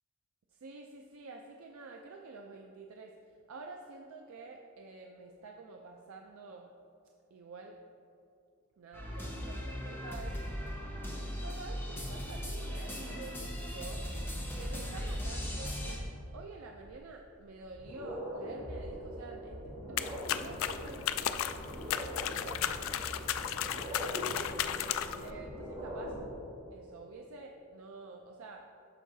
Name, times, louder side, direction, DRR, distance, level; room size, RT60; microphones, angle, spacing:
voice 1, 0.5-6.7 7.3-7.8 8.8-10.7 11.2-14.1 14.6-23.0 23.4-24.7 25.2-26.2 26.7-28.7, right 3 dB, 85° right, 2 dB, 0.5 m, -49 dB
sound 1, 8.9-16.0, equal, 10° left, 1.1 m, -38 dB
sound 2, 17.5-26.3, equal, 30° right, 1.6 m, -42 dB
sound 3, 20.0-25.3, left 10 dB, 70° left, 0.3 m, -35 dB
13.5 x 4.7 x 2.7 m, 2.6 s
head